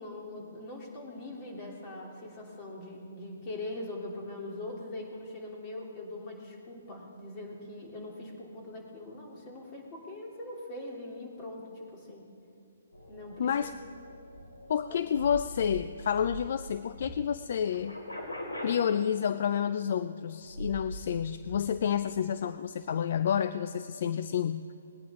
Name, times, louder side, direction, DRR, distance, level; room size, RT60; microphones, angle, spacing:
voice 1, 0.0-12.3 13.1-13.7 14.9-15.0, left 2 dB, 30° left, -1 dB, 3.1 m, -42 dB
sound 1, 12.9-17.2 17.5-18.7 20.4-21.0 21.4-21.6, equal, 85° left, 3.5 m, -42 dB
voice 2, 13.4-13.7 14.7-18.0 18.6-24.6, left 8 dB, 55° left, 12 dB, 0.4 m, -29 dB
19.5 x 10.5 x 3.7 m, 2.6 s
hypercardioid pair, 145°, 0 cm